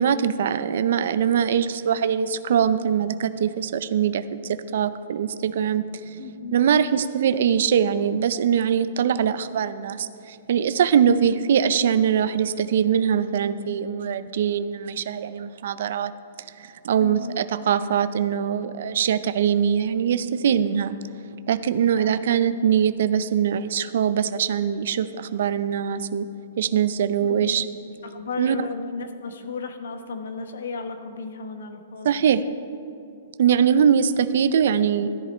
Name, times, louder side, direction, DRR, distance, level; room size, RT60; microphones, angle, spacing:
voice 1, 0.0-6.2 6.5-16.1 16.6-21.0 21.5-26.3 26.6-27.6 28.4-28.6 32.0-32.4 33.4-35.1, right 8 dB, 50° right, 12 dB, 0.5 m, -22 dB
voice 2, 6.2-6.6 11.0-11.3 17.0-17.4 21.9-22.2 27.2-27.6 28.0-32.1 33.9-34.0, left 4 dB, 75° left, 7 dB, 1.2 m, -35 dB
13.0 x 10.5 x 4.4 m, 2.6 s
hypercardioid pair, 180°, 0 cm